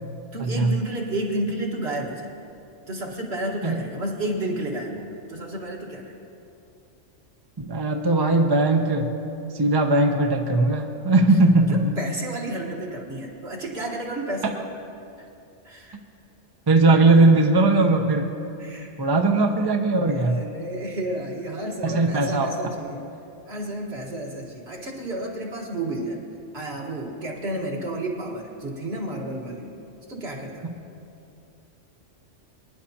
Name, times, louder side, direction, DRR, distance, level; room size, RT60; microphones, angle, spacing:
voice 1, 0.3-2.3 2.9-6.1 11.7-14.7 15.2-15.3 15.7-16.0 18.6-18.9 20.1-23.0 23.5-26.2 26.5-29.7 30.1-30.7, right 1 dB, 60° right, -1 dB, 1.8 m, -31 dB
voice 2, 7.6-9.1 9.6-11.9 16.7-18.3 19.0-20.4 21.8-22.6 30.6-30.7, right 2 dB, 25° right, 3 dB, 0.5 m, -19 dB
23.0 x 10.5 x 2.9 m, 2.7 s
omnidirectional pair, 1.3 m